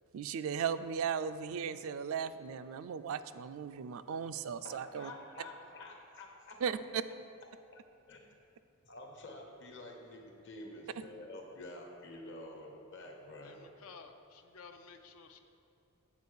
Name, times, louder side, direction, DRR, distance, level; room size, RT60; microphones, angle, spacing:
voice 1, 0.1-5.1 6.6-7.0 11.0-11.1, right 7 dB, 70° right, 12 dB, 0.3 m, -36 dB
voice 2, 4.6-6.6 8.1-8.2 8.8-13.7, left 1 dB, 60° left, 1 dB, 1.2 m, -49 dB
voice 3, 13.4-15.4, left 5 dB, 80° left, 6 dB, 0.6 m, -54 dB
8.3 x 4.1 x 7.0 m, 2.6 s
head